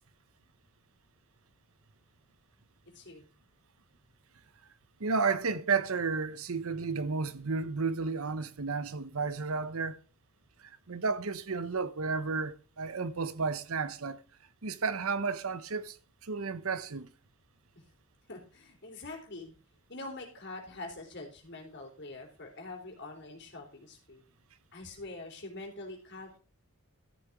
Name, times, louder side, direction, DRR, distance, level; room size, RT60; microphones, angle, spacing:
voice 1, 2.9-3.3 17.8-17.9 18.3-19.5 19.9-24.2 24.7-26.4, left 2 dB, 50° left, 3.6 m, -44 dB
voice 2, 5.0-10.0 10.6-14.2 14.6-16.0 16.2-17.1, right 4 dB, 70° right, 0.8 m, -32 dB
13.5 x 6.7 x 4.7 m
head